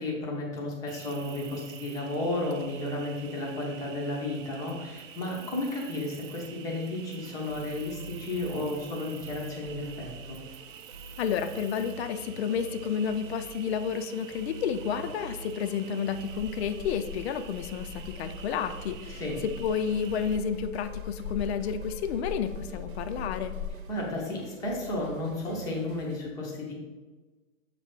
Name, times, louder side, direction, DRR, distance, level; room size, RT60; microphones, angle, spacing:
voice 1, 0.0-10.4 19.2-19.4 23.9-26.7, left 2 dB, 10° left, -2 dB, 0.6 m, -33 dB
Cricket, 0.9-20.4, right 9 dB, 70° right, 0.6 m, -48 dB
sound 1, 7.2-26.2, right 3 dB, 90° right, 1.1 m, -46 dB
voice 2, 11.2-23.6, left 7 dB, 50° left, 9 dB, 0.5 m, -31 dB
sound 2, 16.3-23.7, left 7 dB, 85° left, 1.1 m, -41 dB
7.2 x 3.3 x 5.1 m, 1.3 s
hypercardioid pair, 160°, 41 cm